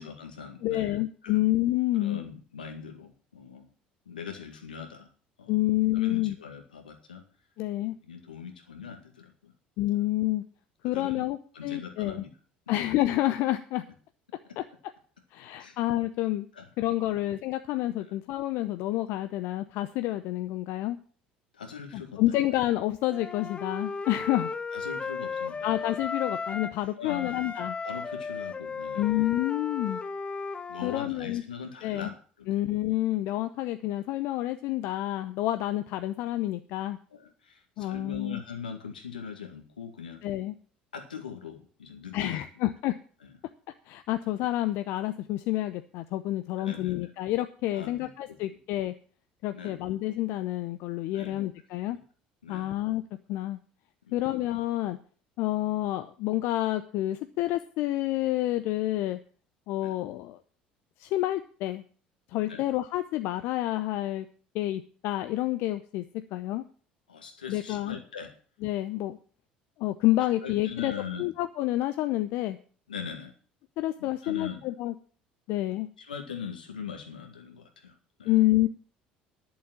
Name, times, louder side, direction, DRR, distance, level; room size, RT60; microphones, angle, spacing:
voice 1, 0.0-1.4 2.0-3.7 4.1-5.1 5.4-5.6 5.9-7.2 8.0-9.5 9.9-10.0 10.8-11.3 11.5-12.3 12.7-12.8 15.6-15.8 16.5-16.7 17.1-17.2 18.0-18.1 21.5-22.4 24.3-25.6 27.0-27.4 27.8-29.2 30.7-32.6 37.1-40.2 40.9-42.6 43.2-43.4 46.6-47.1 47.7-48.4 49.5-49.9 51.1-51.5 51.8-52.0 52.4-52.8 54.0-54.3 59.8-60.0 62.5-62.6 67.1-68.4 70.4-71.3 72.9-73.4 74.0-74.6 76.0-78.4, left 6 dB, 85° left, 5 dB, 2.0 m, -41 dB
voice 2, 0.6-2.2 5.5-6.4 7.6-7.9 9.8-10.4 10.8-12.2 12.7-13.8 14.6-14.7 15.3-16.5 16.8-21.0 21.9-24.5 25.6-27.7 29.0-30.0 30.8-31.4 31.8-32.1 32.5-37.0 37.8-38.4 40.2-40.5 42.1-43.0 43.9-48.9 49.4-52.0 52.5-53.0 53.3-53.6 54.1-55.0 55.4-59.2 59.7-60.4 61.0-61.8 62.3-64.3 64.5-66.0 66.3-66.6 67.5-68.0 68.6-69.2 69.8-70.9 71.2-72.6 73.8-74.9 75.5-75.9 78.2-78.7, left 15 dB, 60° left, 10 dB, 0.7 m, -28 dB
Wind instrument woodwind instrument, 23.1-26.8 27.1-31.0, left 4 dB, 25° left, 1.1 m, -35 dB
11.0 x 7.2 x 7.5 m, 0.41 s
figure-of-eight pair, 60°, 5 cm